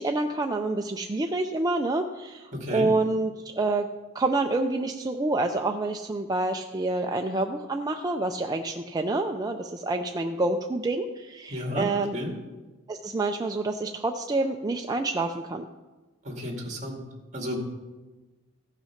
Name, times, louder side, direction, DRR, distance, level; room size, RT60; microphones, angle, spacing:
voice 1, 0.0-3.9 4.1-12.2 12.9-15.7, right 2 dB, 20° right, 3 dB, 0.4 m, -27 dB
voice 2, 2.5-2.9 11.5-12.4 16.2-17.0 17.3-17.6, equal, 35° right, 1 dB, 2.1 m, -32 dB
15.5 x 5.8 x 5.7 m, 1.2 s
head